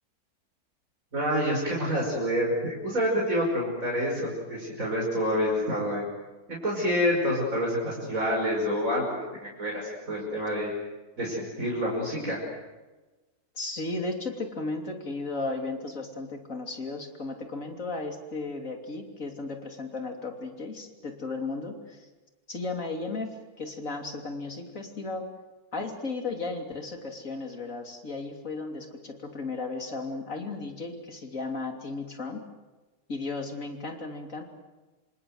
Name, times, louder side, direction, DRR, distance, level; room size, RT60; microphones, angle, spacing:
voice 1, 1.1-6.1 6.5-10.7 11.2-12.4, equal, 60° right, -2 dB, 6.1 m, -28 dB
voice 2, 13.5-22.1 22.5-25.3 25.7-32.4 33.1-34.4, left 3 dB, 55° left, 4 dB, 3.4 m, -35 dB
27.0 x 27.0 x 7.9 m, 1.2 s
omnidirectional pair, 1.6 m